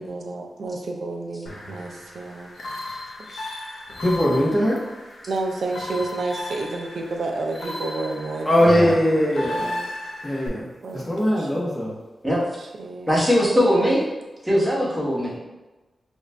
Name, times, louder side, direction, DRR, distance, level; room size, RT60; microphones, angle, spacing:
voice 1, 0.0-2.5 2.9-3.0 3.3-3.5 5.3-8.5 9.1-9.8 10.8-11.0 11.4-11.5 12.6-13.3, right 3 dB, 80° right, 2 dB, 0.5 m, -30 dB
sound 1, 1.5-10.5, left 1 dB, 80° left, 0.6 m, -36 dB
voice 2, 4.0-4.8 8.4-9.6 10.2-11.9, equal, 20° left, -5 dB, 1.0 m, -20 dB
voice 3, 13.1-14.0 14.4-15.4, equal, 5° right, -6 dB, 1.1 m, -20 dB
4.8 x 2.6 x 2.2 m, 1.1 s
wide cardioid pair, 90°, 0 cm